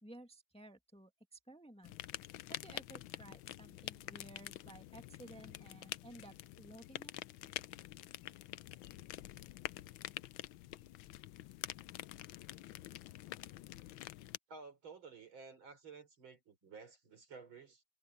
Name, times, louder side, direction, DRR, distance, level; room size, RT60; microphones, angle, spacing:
voice 1, 0.0-2.0 2.5-7.1, right 1 dB, 5° left, 1.2 m, -56 dB
sound 1, 1.8-14.4, left 15 dB, 75° left, 1.3 m, -47 dB
voice 2, 14.5-17.8, right 4 dB, 65° right, 5.0 m, -53 dB
omnidirectional pair, 2.4 m